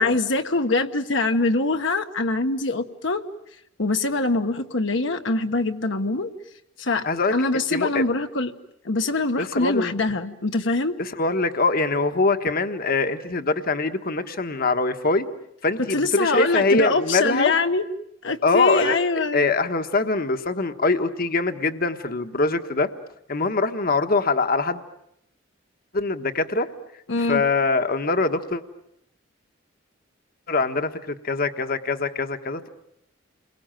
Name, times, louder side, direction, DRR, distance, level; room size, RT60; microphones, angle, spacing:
voice 1, 0.0-3.2 3.8-6.3 6.8-8.5 8.8-11.0 15.9-17.8 18.2-19.4 27.1-27.4, left 2 dB, 70° left, 6 dB, 1.3 m, -23 dB
voice 2, 7.7-8.0 9.4-9.9 11.0-15.3 15.6-17.5 18.4-19.0 19.3-22.9 23.3-24.8 25.9-26.7 27.3-28.6 30.5-32.7, left 3 dB, 50° left, 8 dB, 1.3 m, -23 dB
29.5 x 22.5 x 9.0 m, 0.79 s
head